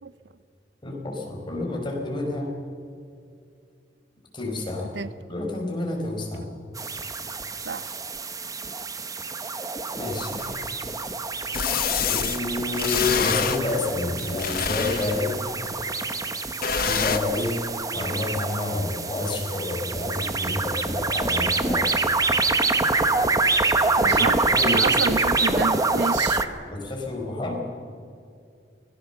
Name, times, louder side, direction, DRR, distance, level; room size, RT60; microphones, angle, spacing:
voice 1, 0.8-2.5 4.3-4.9 5.3-6.5 9.9-10.5 12.1-15.4 16.7-17.7 17.9-21.9 24.0-24.2 24.5-24.9 26.7-27.6, left 2 dB, 30° left, 4.8 m, -29 dB
sound 1, 6.8-26.5, right 3 dB, 20° right, 1.1 m, -26 dB
sound 2, 10.4-10.5 11.5-12.4 12.8-13.6 14.2-15.3 16.6-17.2, left 7 dB, 55° left, 1.2 m, -26 dB
voice 2, 24.0-26.5, right 4 dB, 85° right, 0.7 m, -29 dB
24.5 x 18.5 x 6.9 m
head